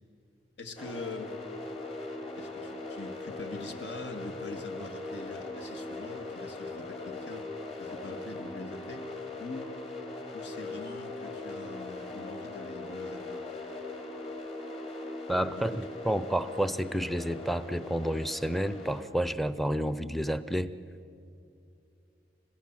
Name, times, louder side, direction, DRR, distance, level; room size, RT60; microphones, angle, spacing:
voice 1, 0.6-1.4 2.4-7.5 7.8-9.7 10.3-13.4 15.6-15.9, left 2 dB, 75° left, 5 dB, 2.0 m, -44 dB
sound 1, 0.8-19.0, left 2 dB, 35° left, 2.7 m, -40 dB
voice 2, 15.3-20.7, right 1 dB, ahead, 13 dB, 0.6 m, -30 dB
30.0 x 16.0 x 7.4 m, 2.6 s
head